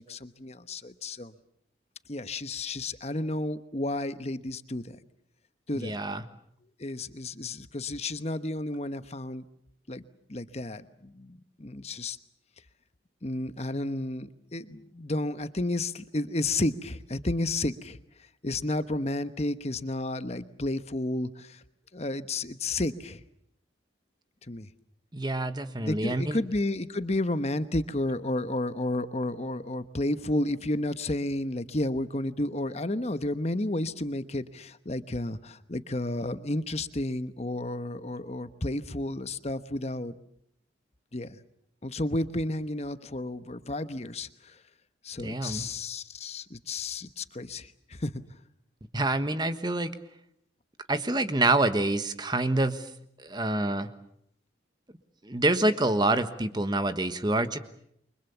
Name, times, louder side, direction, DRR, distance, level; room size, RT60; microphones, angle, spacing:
voice 1, 0.0-1.3 2.1-5.0 5.7-6.0 6.8-9.4 9.9-10.0 10.3-12.2 13.2-18.0 18.4-21.6 21.9-23.2 24.5-24.7 25.8-40.1 41.1-41.4 41.8-44.5 45.0-48.2, left 2 dB, 35° left, 12 dB, 1.1 m, -32 dB
voice 2, 5.7-6.2 25.1-26.4 45.2-45.7 48.9-49.9 50.9-52.9 53.2-53.9 55.2-57.6, right 2 dB, 20° right, 10 dB, 1.4 m, -27 dB
29.0 x 24.5 x 7.1 m, 0.72 s
head